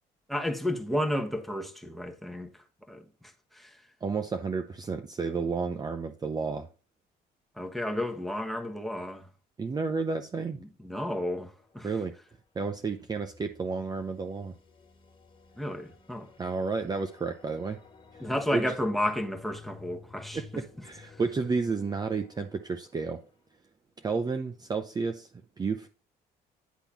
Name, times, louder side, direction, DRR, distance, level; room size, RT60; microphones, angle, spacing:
voice 1, 0.3-2.5 2.9-3.0 3.5-3.8 7.6-9.3 10.6-11.9 15.6-16.3 18.2-20.4 21.1-21.2, left 1 dB, ahead, 1.3 m, -32 dB
voice 2, 4.0-6.7 9.6-10.6 11.8-12.1 12.6-14.5 16.4-17.8 18.1-18.6 20.3-23.2 24.0-25.3 25.6-25.9, right 4 dB, 25° right, 0.7 m, -31 dB
sound 1, 11.6-12.2 12.7-23.3, left 4 dB, 30° left, 2.0 m, -53 dB
10.0 x 3.6 x 5.9 m
cardioid pair, 110°, 17 cm